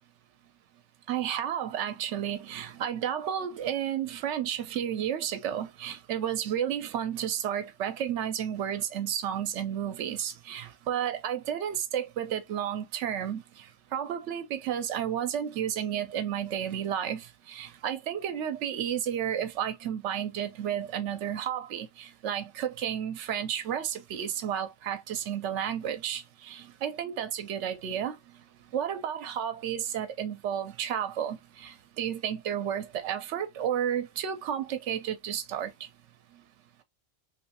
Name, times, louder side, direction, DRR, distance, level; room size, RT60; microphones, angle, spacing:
voice 1, 1.1-13.4 13.9-28.2 28.7-35.7, right 9 dB, 70° right, 1.0 m, -32 dB
3.1 x 3.1 x 2.8 m
omnidirectional pair, 1.3 m